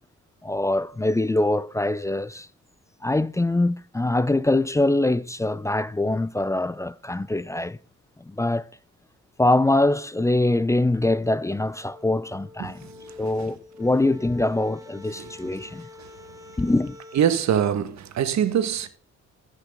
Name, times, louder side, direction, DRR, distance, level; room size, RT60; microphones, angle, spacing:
voice 1, 0.4-2.5 3.0-7.8 8.3-8.6 9.4-12.9 13.2-15.9 16.6-17.0, left 2 dB, 10° left, 0.4 m, -23 dB
sound 1, 11.2-17.4, left 3 dB, 10° right, 1.6 m, -46 dB
voice 2, 15.2-15.6 17.1-18.9, right 9 dB, 65° right, 1.4 m, -24 dB
15.0 x 6.5 x 3.6 m
cardioid pair, 90°, 30 cm